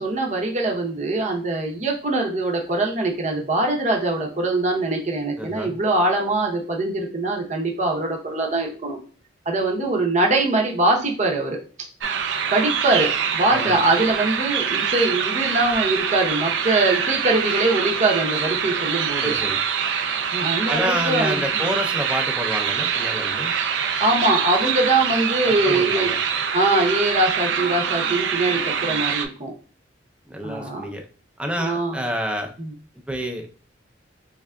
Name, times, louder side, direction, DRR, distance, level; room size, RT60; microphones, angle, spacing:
voice 1, 0.0-9.0 9.5-11.6 12.5-19.3 20.3-21.7 24.0-26.1 26.5-29.5 30.4-30.8 31.6-32.0 32.6-32.7, right 2 dB, 40° right, 1 dB, 0.7 m, -22 dB
voice 2, 5.4-5.7 13.5-13.8 19.2-19.6 20.7-23.5 25.5-26.2 30.3-31.0 31.4-32.5 33.1-33.5, equal, 5° right, 2 dB, 0.5 m, -28 dB
sound 1, 12.0-29.3, right 7 dB, 75° right, 0.5 m, -24 dB
3.6 x 3.3 x 2.2 m, 0.39 s
head